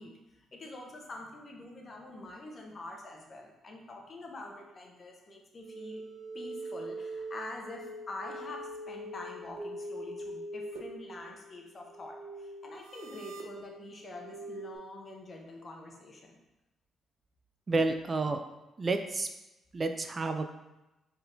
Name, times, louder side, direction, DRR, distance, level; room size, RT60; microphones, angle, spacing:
voice 1, 0.0-6.0 6.3-16.4, left 2 dB, 40° left, 1 dB, 0.9 m, -46 dB
sound 1, 5.6-14.8, right 1 dB, 70° right, 0.6 m, -43 dB
voice 2, 17.7-18.4 18.8-19.3 19.7-20.5, right 3 dB, 35° right, 7 dB, 0.3 m, -30 dB
4.6 x 3.7 x 2.6 m, 1.0 s
cardioid pair, 90°, 0 cm